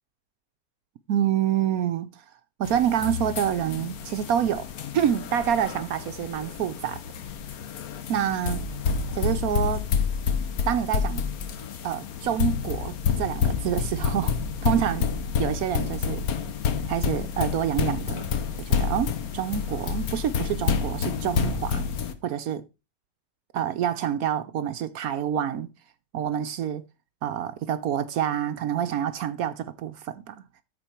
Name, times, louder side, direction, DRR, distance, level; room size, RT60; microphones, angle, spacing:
voice 1, 1.1-2.2 2.6-4.7 4.9-7.0 8.1-8.6 9.1-9.9 10.7-11.2 11.8-14.3 14.6-15.1 15.4-16.3 16.9-18.3 18.6-21.9 22.2-22.6 23.5-25.7 26.1-26.8 27.2-30.4, right 10 dB, 65° right, 1.0 m, -27 dB
sound 1, 2.6-22.1, left 6 dB, 60° left, 1.3 m, -29 dB
13.0 x 4.5 x 4.4 m
omnidirectional pair, 1.9 m